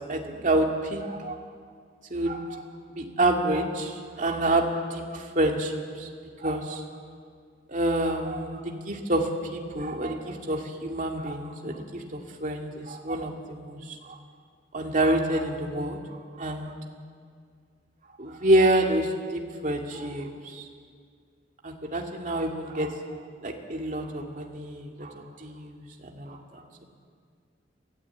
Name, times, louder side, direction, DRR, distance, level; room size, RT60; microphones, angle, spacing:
voice 1, 0.1-1.5 2.1-2.6 2.9-4.7 4.9-6.1 6.4-6.8 7.7-14.2 14.7-16.0 16.4-16.7 18.2-20.6 21.6-22.9 23.4-26.8, right 1 dB, 45° right, 1 dB, 2.4 m, -28 dB
22.5 x 16.0 x 8.5 m, 2.1 s
head